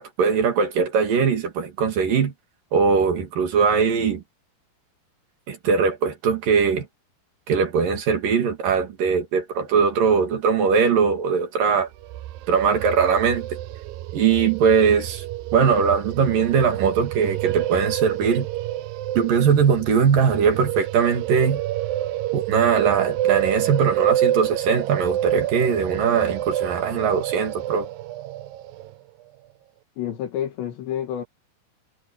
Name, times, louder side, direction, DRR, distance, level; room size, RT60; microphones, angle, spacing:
voice 1, 0.0-2.3 2.7-4.2 5.5-6.9 7.5-11.9 12.5-13.6 14.1-15.2 15.5-18.5 19.2-21.6 22.3-27.9, right 6 dB, 55° right, 3.7 m, -20 dB
sound 1, 11.9-28.9, right 13 dB, 80° right, 2.1 m, -28 dB
voice 2, 30.0-31.2, left 10 dB, 75° left, 4.1 m, -29 dB
omnidirectional pair, 5.1 m